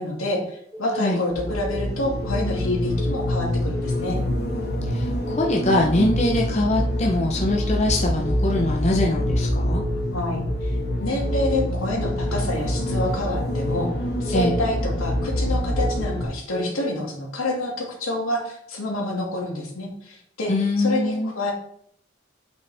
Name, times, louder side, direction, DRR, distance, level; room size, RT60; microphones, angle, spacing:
voice 1, 0.0-4.2 10.1-10.8 11.0-13.9 14.2-20.5 20.8-21.5, left 1 dB, 80° left, -1 dB, 2.3 m, -28 dB
Keyboard (musical) / Alarm, 0.7-1.1 1.5-1.9 2.2-2.6 3.0-3.4 3.7-4.1 4.5-4.9 5.2-5.6 6.0-6.4 6.7-7.1 7.5-7.9 8.2-8.6 9.0-9.4 9.7-10.1 10.5-10.9 11.2-11.6 12.0-12.4 12.7-13.1 13.5-13.9 14.3-14.6 15.0-15.4 15.8-16.1 16.5-16.9, left 1 dB, 5° right, 1.6 m, -34 dB
sound 1, 1.3-16.2, equal, 50° left, 1.6 m, -26 dB
voice 2, 4.9-9.8 14.3-14.6 20.5-21.3, left 2 dB, 30° left, 0 dB, 0.8 m, -23 dB
8.4 x 5.5 x 3.5 m, 0.68 s
head